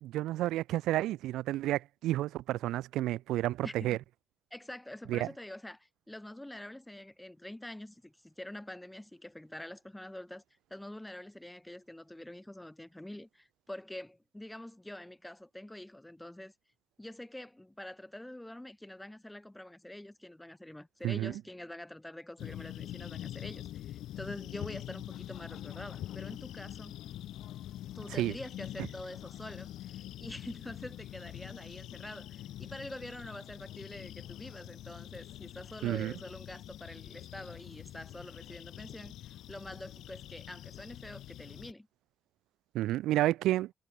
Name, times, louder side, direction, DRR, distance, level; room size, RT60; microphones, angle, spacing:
voice 1, 0.0-4.0 5.1-5.3 21.0-21.4 28.1-28.4 35.8-36.1 42.7-43.7, right 15 dB, 90° right, 0.6 m, -31 dB
voice 2, 3.6-4.0 4.5-10.4 10.7-16.5 17.0-27.0 27.9-41.9, left 1 dB, 10° left, 3.9 m, -46 dB
sound 1, 22.4-41.7, left 13 dB, 80° left, 1.3 m, -45 dB
cardioid pair, 90°, 0 cm